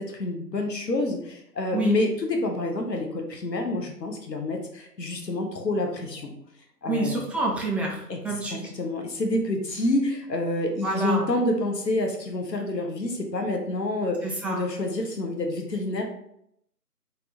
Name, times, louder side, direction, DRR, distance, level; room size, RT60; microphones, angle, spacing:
voice 1, 0.1-6.3 6.8-7.2 8.1-8.2 8.5-16.0, left 2 dB, 90° left, 3 dB, 1.0 m, -28 dB
voice 2, 6.8-8.8 10.8-11.3 14.2-14.6, right 2 dB, 5° right, -2 dB, 0.4 m, -28 dB
3.4 x 2.6 x 2.8 m, 0.74 s
figure-of-eight pair, 175°, 49 cm